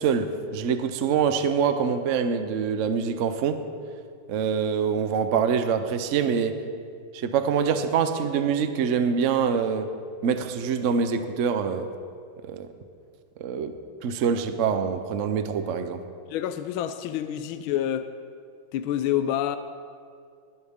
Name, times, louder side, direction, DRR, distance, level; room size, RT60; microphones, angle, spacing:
voice 1, 0.0-3.6 4.3-6.6 7.1-9.9 10.2-11.9 12.4-12.7 13.4-13.8 14.0-16.0, right 6 dB, 65° right, 9 dB, 0.7 m, -25 dB
voice 2, 16.3-18.1 18.7-19.6, left 11 dB, 80° left, 10 dB, 1.4 m, -27 dB
20.5 x 11.0 x 3.6 m, 2.2 s
omnidirectional pair, 2.2 m